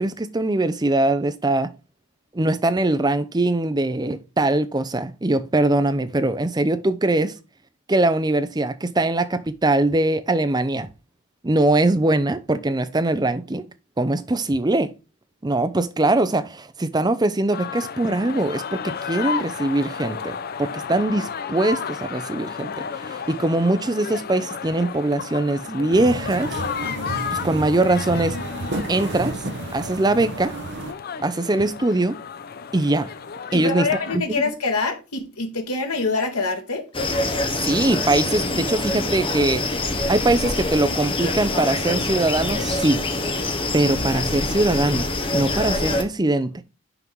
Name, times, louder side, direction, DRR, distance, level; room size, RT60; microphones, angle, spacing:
voice 1, 0.0-1.7 2.3-7.4 7.9-10.9 11.4-13.6 14.0-14.9 15.4-26.5 27.3-28.4 28.9-29.4 29.7-30.5 31.2-32.2 32.7-33.1 33.5-33.9 34.1-34.4 37.6-39.6 40.1-43.0 43.7-45.1 45.3-46.5, right 2 dB, 20° right, 0.5 m, -22 dB
sound 1, 17.5-34.2, left 6 dB, 45° left, 0.4 m, -33 dB
sound 2, 25.9-30.9, right 2 dB, 50° right, 0.9 m, -31 dB
voice 2, 33.5-36.9, left 4 dB, 90° left, 1.8 m, -25 dB
sound 3, 36.9-46.0, left 2 dB, 25° left, 0.9 m, -25 dB
5.9 x 4.6 x 5.3 m
head